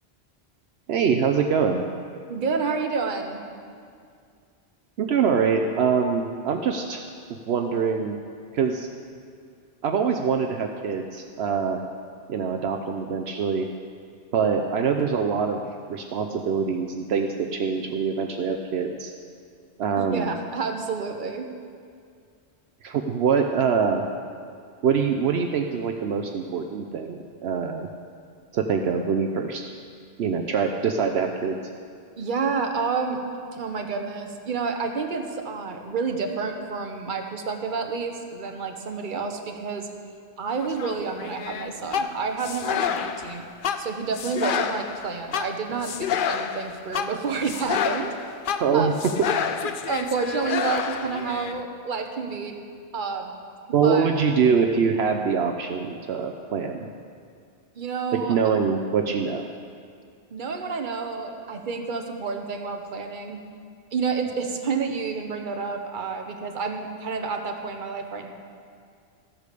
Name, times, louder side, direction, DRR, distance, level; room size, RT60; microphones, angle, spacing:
voice 1, 0.9-1.8 5.0-7.0 7.5-8.2 8.5-8.9 9.8-11.8 12.3-13.7 14.3-15.6 15.9-19.1 19.8-20.3 22.8-24.1 24.8-27.9 28.5-29.6 30.2-31.6 48.6-48.9 53.7-56.9 58.1-59.5, right 6 dB, 70° right, 3 dB, 0.9 m, -24 dB
voice 2, 2.3-3.4 20.0-21.5 32.2-33.2 33.5-39.9 40.4-43.4 43.8-48.1 48.7-48.9 49.8-52.6 52.9-53.3 53.8-54.1 57.8-58.4 60.3-63.4 63.9-68.3, right 5 dB, 50° right, 4 dB, 1.1 m, -29 dB
sound 1, 40.6-51.5, left 7 dB, 60° left, 0.7 m, -29 dB
13.5 x 8.3 x 6.7 m, 2.2 s
omnidirectional pair, 1.1 m